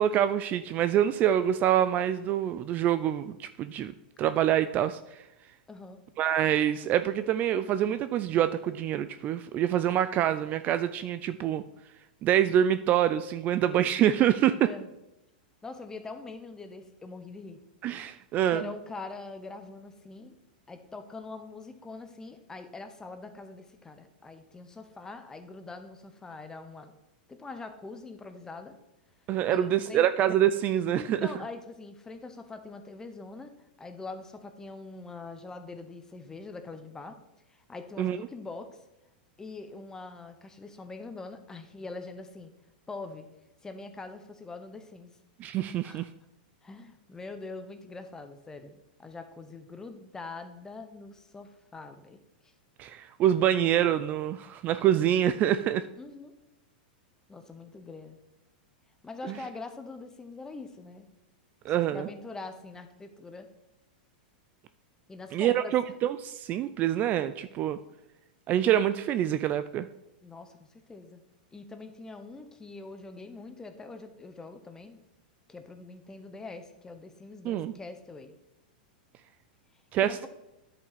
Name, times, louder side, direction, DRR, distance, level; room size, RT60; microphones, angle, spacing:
voice 1, 0.0-3.9 4.2-5.2 6.2-11.6 12.2-14.7 17.8-18.6 29.3-31.3 38.0-38.2 45.4-46.1 52.8-55.9 59.3-59.4 61.6-62.1 65.3-67.8 68.5-69.9 77.4-77.7 79.9-80.3, right 11 dB, 35° right, 12 dB, 0.3 m, -26 dB
voice 2, 5.7-6.0 14.5-14.9 15.6-17.6 18.5-20.3 20.7-26.9 27.3-28.7 29.4-30.1 30.9-37.2 37.5-38.8 39.4-42.5 42.9-43.3 43.6-45.2 45.8-46.1 46.6-52.5 56.0-56.3 57.3-58.2 59.0-61.1 61.7-63.5 65.1-65.7 70.2-71.2 71.5-75.0 75.5-78.3 80.0-80.3, left 3 dB, 10° left, 8 dB, 0.8 m, -43 dB
9.8 x 5.5 x 4.1 m, 0.92 s
hypercardioid pair, 130°, 5 cm